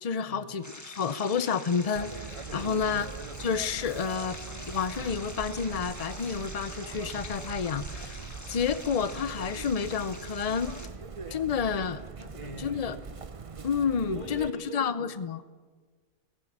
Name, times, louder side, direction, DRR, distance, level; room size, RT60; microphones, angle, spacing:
voice 1, 0.0-3.1 3.4-4.4 4.7-8.2 8.5-10.8 11.3-12.0 12.6-13.0 13.6-15.4, left 6 dB, 80° left, 13 dB, 0.3 m, -30 dB
sound 1, 0.6-10.9, left 1 dB, 10° left, 1.5 m, -45 dB
Chirp tweet, 2.0-14.5, right 5 dB, 55° right, 0.3 m, -42 dB
voice 2, 2.5-3.0 11.2-11.4 12.2-12.9 13.8-14.9, right 1 dB, 25° left, 3 dB, 2.6 m, -42 dB
19.0 x 17.0 x 8.6 m, 1.4 s
omnidirectional pair, 1.7 m